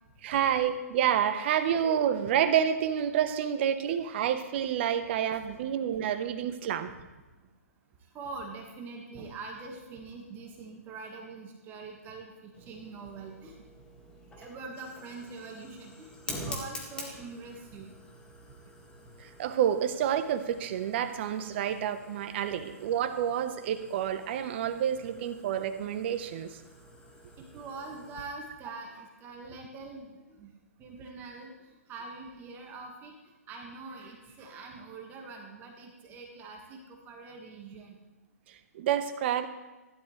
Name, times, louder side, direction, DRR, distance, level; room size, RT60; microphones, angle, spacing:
voice 1, 0.2-6.9 19.2-26.5 38.7-39.5, right 9 dB, 45° right, 10 dB, 1.1 m, -29 dB
voice 2, 8.1-13.6 14.4-17.9 27.4-30.5 30.8-33.1 33.5-38.0, right 3 dB, 25° right, 1 dB, 1.8 m, -44 dB
Fire, 12.5-28.2, left 1 dB, 10° left, 2.0 m, -47 dB
16.0 x 11.5 x 3.3 m, 1.1 s
figure-of-eight pair, 125°, 8 cm